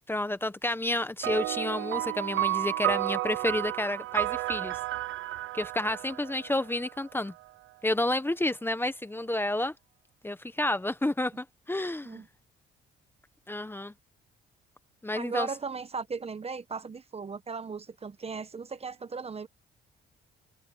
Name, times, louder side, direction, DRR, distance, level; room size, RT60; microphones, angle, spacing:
voice 1, 0.1-4.8 5.5-7.3 7.8-9.7 10.2-12.2 13.5-13.9 15.0-15.5, left 1 dB, 10° left, 1.2 m, -30 dB
sound 1, 1.2-7.0, right 16 dB, 75° right, 0.7 m, -32 dB
voice 2, 15.1-19.5, right 5 dB, 30° right, 1.1 m, -37 dB
cardioid pair, 90°, 20 cm